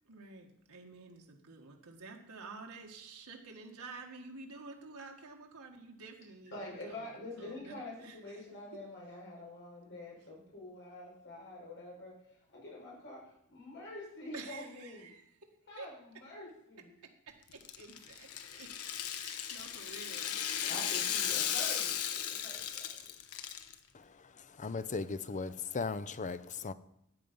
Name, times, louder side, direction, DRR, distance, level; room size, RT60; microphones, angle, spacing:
voice 1, 0.1-7.1 7.4-8.4 14.3-15.2 15.8-15.9 17.3-18.7 19.0-21.3, right 4 dB, 80° right, 1.9 m, -50 dB
voice 2, 6.5-15.1 15.7-16.9 20.7-23.1, left 1 dB, 55° left, 5.9 m, -47 dB
Rattle (instrument), 17.5-23.7, left 9 dB, 80° left, 1.1 m, -36 dB
voice 3, 24.6-26.7, left 4 dB, 35° left, 0.6 m, -37 dB
13.5 x 9.2 x 5.5 m
head